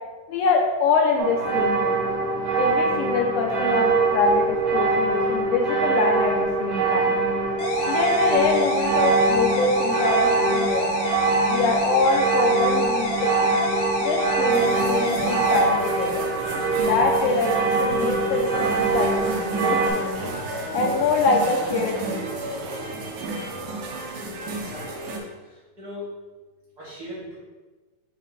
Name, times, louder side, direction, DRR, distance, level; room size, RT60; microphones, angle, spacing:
voice 1, 0.3-2.0 2.5-7.2 7.9-10.9 11.5-13.6 14.0-16.3 16.8-20.3 20.7-22.3, left 4 dB, 80° left, 1 dB, 2.0 m, -24 dB
sound 1, 1.2-19.9, right 3 dB, 60° right, 1.3 m, -23 dB
sound 2, 7.6-15.6, left 1 dB, 55° left, 1.9 m, -27 dB
sound 3, 14.5-25.2, right 2 dB, 85° right, 2.6 m, -32 dB
voice 2, 24.5-25.2 25.5-26.1 26.8-27.4, left 1 dB, 45° right, -8 dB, 1.4 m, -39 dB
7.5 x 3.6 x 4.0 m, 1.3 s
omnidirectional pair, 3.9 m